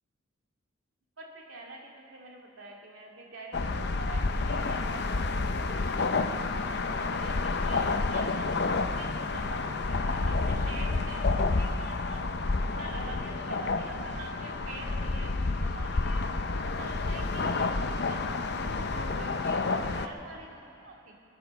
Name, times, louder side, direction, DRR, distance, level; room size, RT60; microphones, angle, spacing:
voice 1, 1.2-5.4 5.7-12.2 12.7-16.2 16.6-17.7 18.1-21.1, right 2 dB, 75° right, -1 dB, 2.3 m, -46 dB
sound 1, 3.5-20.1, left 3 dB, 50° left, 0.6 m, -29 dB
21.5 x 8.7 x 6.9 m, 2.8 s
head